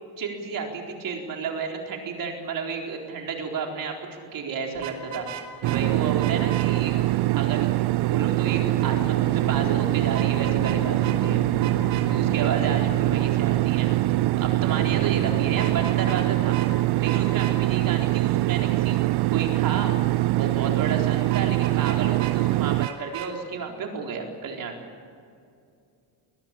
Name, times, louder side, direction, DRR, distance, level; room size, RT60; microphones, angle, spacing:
voice 1, 0.2-6.9 7.3-7.7 8.0-11.4 12.1-13.9 14.4-16.6 17.0-19.0 19.3-19.9 20.3-24.8, right 5 dB, 50° right, 2 dB, 4.3 m, -32 dB
Vehicle horn car horn honking, 4.7-5.8 6.2-6.7 10.1-10.8 11.0-11.2 11.6-12.1 15.5-16.3 16.5-16.7 17.1-17.5 21.3-22.4 22.8-23.3, right 11 dB, 85° right, 3.2 m, -36 dB
sound 1, 5.6-22.9, right 18 dB, 70° right, 0.5 m, -23 dB
sound 2, 8.6-15.6, left 3 dB, 55° left, 4.1 m, -38 dB
22.0 x 20.0 x 8.7 m, 2.4 s
cardioid pair, 170°, 42 cm